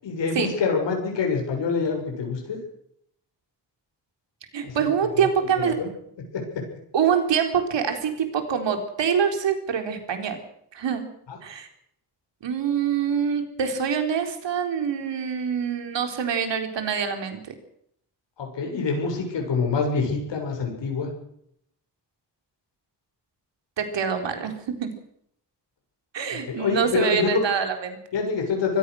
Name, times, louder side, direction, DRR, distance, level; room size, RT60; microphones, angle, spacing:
voice 1, 0.0-2.6 4.6-4.9 5.5-5.9 6.3-6.6 11.3-11.4 18.4-21.1 26.5-27.4 28.1-28.8, left 5 dB, 90° left, 2 dB, 6.6 m, -26 dB
voice 2, 4.5-5.8 6.9-10.4 10.7-11.1 11.4-11.7 12.4-17.4 23.8-24.9 26.1-28.0, right 7 dB, 90° right, 6 dB, 4.1 m, -25 dB
25.5 x 17.0 x 6.4 m, 0.71 s
wide cardioid pair, 175°, 42 cm